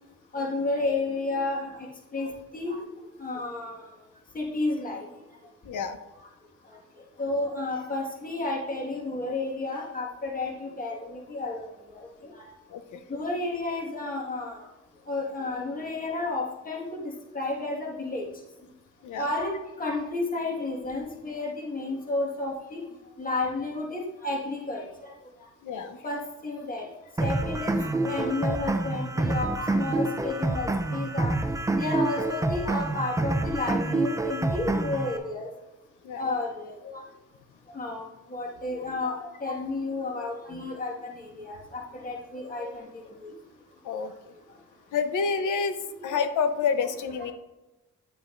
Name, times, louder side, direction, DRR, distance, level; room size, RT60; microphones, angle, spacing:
voice 1, 0.3-1.9 2.1-2.8 3.2-3.7 4.3-5.0 7.2-11.6 13.1-14.5 15.1-18.2 19.2-19.5 19.8-22.8 23.2-24.8 26.0-26.9 27.2-31.3 31.7-35.5 36.2-36.8 37.8-38.0 38.3-39.1 39.4-41.1 41.4-42.8 43.2-43.3 46.0-46.1, left 2 dB, 30° left, -2 dB, 1.7 m, -31 dB
voice 2, 5.6-6.0 12.7-13.0 19.0-19.3 25.6-26.0 36.0-36.3 43.8-44.1 44.9-47.3, left 5 dB, 85° left, 10 dB, 0.8 m, -28 dB
sound 1, 27.2-35.2, right 2 dB, 10° right, 0.5 m, -27 dB
10.0 x 7.3 x 2.6 m, 1.0 s
cardioid pair, 120°, 30 cm